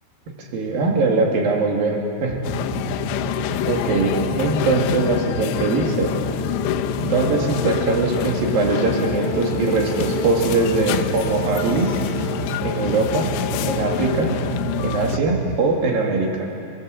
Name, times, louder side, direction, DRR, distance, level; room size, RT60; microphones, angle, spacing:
voice 1, 0.4-2.4 3.7-6.1 7.0-12.0 12.6-13.3 13.6-14.3 14.8-16.5, right 3 dB, 55° right, 1 dB, 3.8 m, -21 dB
sound 1, 2.3-15.6, right 5 dB, 75° right, 3.9 m, -31 dB
sound 2, 2.4-15.2, left 13 dB, 80° left, 2.8 m, -26 dB
sound 3, 6.3-12.4, right 8 dB, 30° right, 5.9 m, -33 dB
28.5 x 17.0 x 7.8 m, 2.8 s
omnidirectional pair, 5.5 m